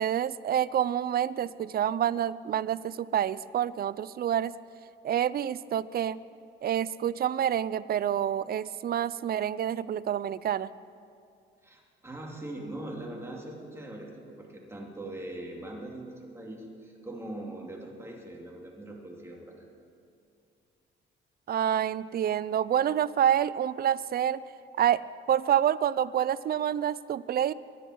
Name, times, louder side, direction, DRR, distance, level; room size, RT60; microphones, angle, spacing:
voice 1, 0.0-4.5 5.0-6.2 6.6-10.7 21.5-24.4 24.8-25.0 25.3-27.5, right 10 dB, 50° right, 18 dB, 0.5 m, -27 dB
voice 2, 11.6-19.7, right 1 dB, 15° right, -2 dB, 3.2 m, -41 dB
24.0 x 10.5 x 4.7 m, 2.4 s
cardioid pair, 90°, 20 cm